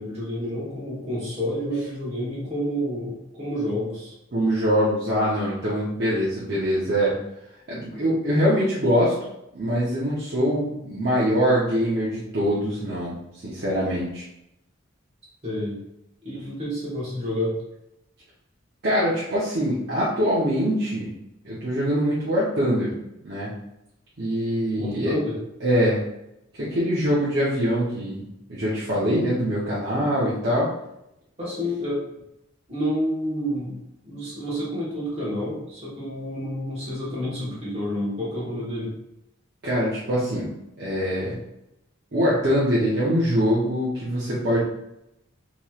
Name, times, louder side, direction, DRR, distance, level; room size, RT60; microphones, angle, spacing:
voice 1, 0.0-4.1 15.4-15.8 16.2-17.6 24.7-25.4 31.4-32.0 32.7-33.8 34.0-38.9, equal, 30° right, -7 dB, 1.1 m, -29 dB
voice 2, 4.3-7.1 7.7-9.1 9.5-13.2 13.4-14.2 18.8-21.1 21.4-22.9 23.2-23.5 24.2-25.1 25.6-26.0 26.5-28.2 28.5-30.7 39.6-40.5 40.8-41.4 42.1-44.6, equal, 50° right, -9 dB, 0.6 m, -23 dB
3.0 x 2.9 x 2.3 m, 0.85 s
head